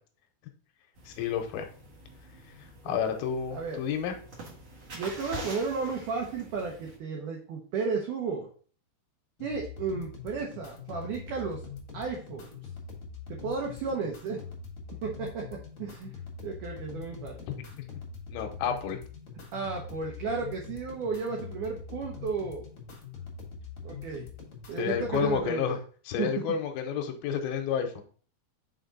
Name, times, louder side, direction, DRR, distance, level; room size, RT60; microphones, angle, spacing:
sound 1, 0.9-7.0, right 1 dB, 55° right, 1.4 m, -45 dB
voice 1, 1.1-1.7 2.9-4.1 18.3-19.0 24.8-25.8 26.1-28.0, left 7 dB, 80° left, 5 dB, 2.4 m, -30 dB
voice 2, 4.9-8.5 9.4-11.6 11.9-12.6 13.4-14.4 15.0-15.4 15.8-16.1 16.4-17.5 19.5-22.7 23.8-24.2 24.7-25.8 26.2-26.3, right 5 dB, 85° right, 0 dB, 1.8 m, -33 dB
sound 2, 9.4-25.4, left 5 dB, 60° left, 1.4 m, -43 dB
5.9 x 4.6 x 3.9 m, 0.44 s
omnidirectional pair, 5.0 m